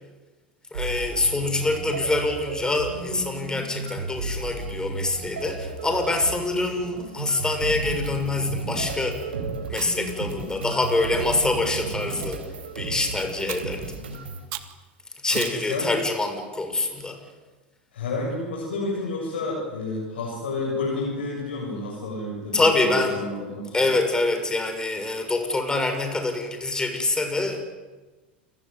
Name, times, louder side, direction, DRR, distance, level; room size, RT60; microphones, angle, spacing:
voice 1, 0.7-9.3 9.7-12.4 12.7-14.0 15.2-17.2 22.5-23.2 23.7-27.6, left 2 dB, 15° left, 6 dB, 6.8 m, -25 dB
sound 1, 0.7-14.5, right 3 dB, 80° right, 5.1 m, -33 dB
Chewing mastication, 9.7-10.1 10.8-11.5 12.1-12.4 13.5-13.8 14.5-14.7 15.3-15.7, right 17 dB, 55° right, 2.1 m, -36 dB
voice 2, 15.3-15.9 17.9-23.9, left 2 dB, 80° left, -3 dB, 8.0 m, -30 dB
29.0 x 19.0 x 9.6 m, 1.2 s
hypercardioid pair, 85°, 6 cm